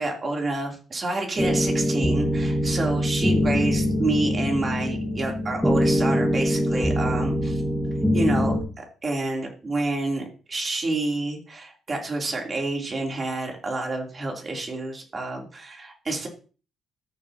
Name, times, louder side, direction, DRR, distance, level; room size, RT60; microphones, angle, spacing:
voice 1, 0.0-7.6 8.1-16.3, right 2 dB, 35° right, 1 dB, 3.1 m, -29 dB
sound 1, 1.4-8.6, equal, ahead, 1.7 m, -23 dB
13.5 x 6.9 x 2.8 m, 0.36 s
cardioid pair, 90°, 0 cm